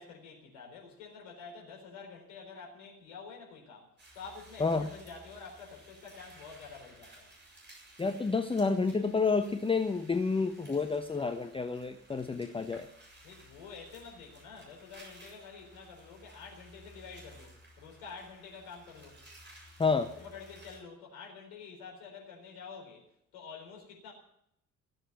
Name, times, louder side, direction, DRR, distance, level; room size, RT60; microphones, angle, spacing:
voice 1, 0.0-7.3 13.2-19.2 20.2-23.0 23.3-24.1, left 5 dB, 65° left, 0 dB, 4.2 m, -48 dB
sound 1, 4.0-20.8, right 1 dB, 25° right, 7.5 m, -56 dB
voice 2, 8.0-12.9 19.8-20.1, left 4 dB, 15° left, 8 dB, 0.8 m, -29 dB
17.0 x 7.9 x 10.0 m, 0.76 s
figure-of-eight pair, 45°, 42 cm